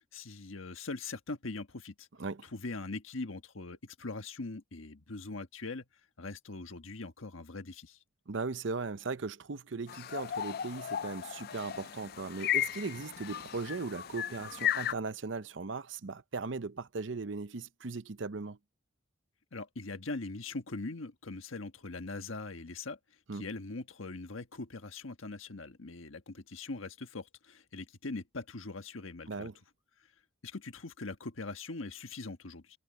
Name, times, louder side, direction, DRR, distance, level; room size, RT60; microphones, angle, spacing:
voice 1, 0.0-2.1 2.4-5.8 6.2-8.0 19.5-23.0 23.3-29.5 30.4-32.8, left 3 dB, 85° left, 1.4 m, -41 dB
voice 2, 8.3-18.6 23.3-23.4 29.3-29.5, right 4 dB, 65° right, 0.7 m, -38 dB
sound 1, 9.9-14.9, left 10 dB, 50° left, 0.3 m, -35 dB
head